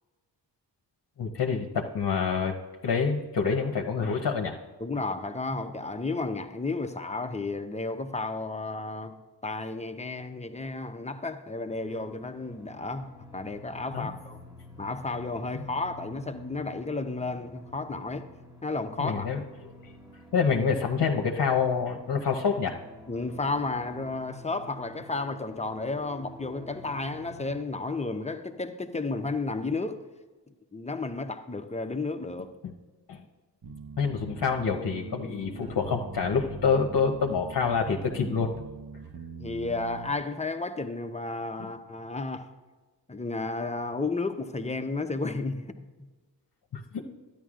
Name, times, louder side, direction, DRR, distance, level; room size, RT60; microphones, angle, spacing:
voice 1, 1.2-2.5 2.8-4.6 13.9-14.1 15.5-15.6 19.0-19.4 20.3-22.7 32.6-32.7 33.1-33.2 34.0-38.5 41.6-41.7 46.7-47.0, left 5 dB, 55° left, 0.9 m, -27 dB
voice 2, 4.8-14.4 14.8-18.3 18.6-19.3 23.1-30.0 30.7-32.5 39.4-42.5 43.1-45.7, left 3 dB, 15° left, 0.7 m, -32 dB
sound 1, 11.7-27.6, left 2 dB, 10° right, 1.5 m, -49 dB
sound 2, 33.6-40.1, right 5 dB, 55° right, 1.0 m, -42 dB
12.5 x 10.0 x 2.5 m
cardioid pair, 60°, 43 cm